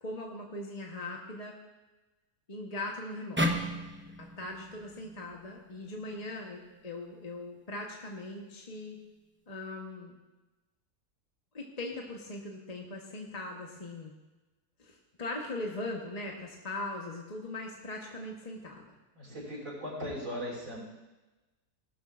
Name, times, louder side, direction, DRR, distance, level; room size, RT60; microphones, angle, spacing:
voice 1, 0.0-1.5 2.5-3.5 4.2-9.0 9.5-10.2 11.5-14.1 14.8-18.9, left 2 dB, 25° left, -1 dB, 1.1 m, -40 dB
sound 1, 3.4-6.6, equal, 10° right, 0.6 m, -35 dB
voice 2, 19.1-20.8, equal, 60° right, -5 dB, 5.9 m, -38 dB
19.0 x 12.5 x 2.5 m, 1.1 s
omnidirectional pair, 1.7 m